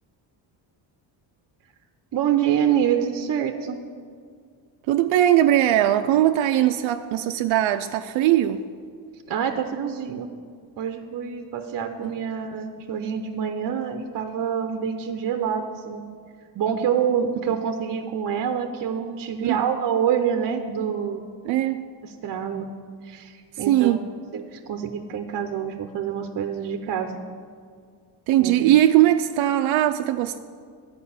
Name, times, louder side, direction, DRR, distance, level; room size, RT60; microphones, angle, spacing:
voice 1, 2.1-3.8 9.3-10.3 10.8-16.0 16.5-21.3 22.2-22.7 23.0-24.0 24.3-27.2 28.4-28.5, right 8 dB, 50° right, 6 dB, 0.7 m, -26 dB
voice 2, 4.9-8.6 12.0-12.1 17.5-17.6 19.4-19.6 21.4-21.9 23.6-24.1 28.3-30.4, right 12 dB, 90° right, 7 dB, 0.5 m, -20 dB
11.5 x 5.1 x 8.6 m, 2.1 s
cardioid pair, 135°, 45 cm